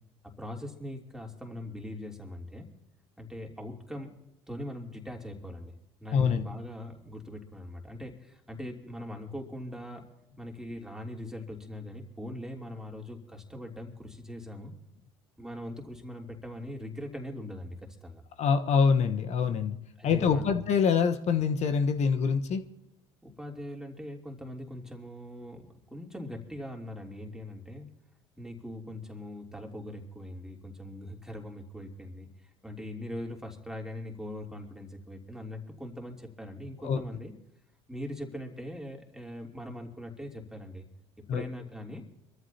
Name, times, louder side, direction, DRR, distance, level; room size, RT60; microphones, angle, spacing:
voice 1, 0.4-2.7 3.2-4.1 4.5-5.7 6.0-10.0 10.4-14.7 15.4-18.2 20.0-20.6 23.2-27.9 28.4-32.3 32.6-37.3 37.9-40.9 41.3-42.0, left 1 dB, 5° right, 1 dB, 3.1 m, -41 dB
voice 2, 6.1-6.5 18.4-19.7 20.0-22.6 36.8-37.0 41.3-41.4, left 6 dB, 55° left, 8 dB, 1.2 m, -25 dB
24.5 x 14.0 x 2.9 m, 0.86 s
hypercardioid pair, 65°, 14 cm